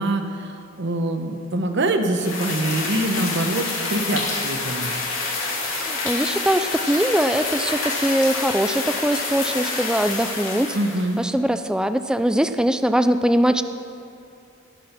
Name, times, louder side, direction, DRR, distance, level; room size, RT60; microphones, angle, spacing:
voice 1, 0.0-4.9 10.7-11.2, right 1 dB, 60° right, 6 dB, 0.9 m, -24 dB
sound 1, 2.2-11.2, left 3 dB, 85° left, 2.8 m, -27 dB
voice 2, 5.7-10.8 11.2-13.6, right 1 dB, 5° right, 10 dB, 0.3 m, -21 dB
17.5 x 6.2 x 5.9 m, 2.6 s
head